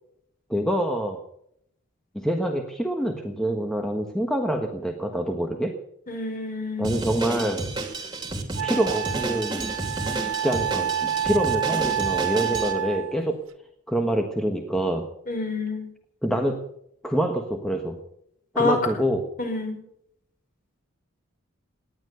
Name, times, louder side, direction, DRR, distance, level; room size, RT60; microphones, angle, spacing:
voice 1, 0.5-1.2 2.1-5.7 6.8-7.6 8.6-9.7 10.2-13.4 13.9-15.1 16.2-16.6 17.0-18.0 18.5-19.2, right 1 dB, ahead, 3 dB, 1.3 m, -26 dB
voice 2, 6.1-7.0 15.3-15.8 18.6-18.8 19.4-19.8, left 3 dB, 40° left, 3 dB, 5.1 m, -27 dB
Drum kit, 6.8-12.7, right 2 dB, 20° right, 2.7 m, -31 dB
Wind instrument woodwind instrument, 7.9-8.0 8.6-13.2, right 9 dB, 65° right, 1.0 m, -28 dB
19.0 x 11.0 x 6.7 m, 0.73 s
head